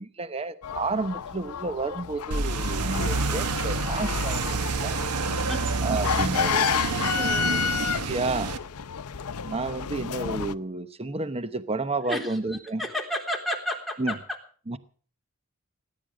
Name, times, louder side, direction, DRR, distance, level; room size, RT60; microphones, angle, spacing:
voice 1, 0.0-5.0 5.8-6.7 8.1-8.5 9.4-12.8 14.0-14.1 14.7-14.8, right 3 dB, 25° right, 13 dB, 0.9 m, -31 dB
sound 1, 0.6-10.5, left 7 dB, 85° left, 0.7 m, -31 dB
sound 2, 2.3-8.6, right 3 dB, 85° right, 1.2 m, -28 dB
voice 2, 7.1-7.9 12.1-14.2, left 1 dB, ahead, 0 dB, 3.7 m, -32 dB
19.0 x 10.5 x 6.5 m, 0.43 s
head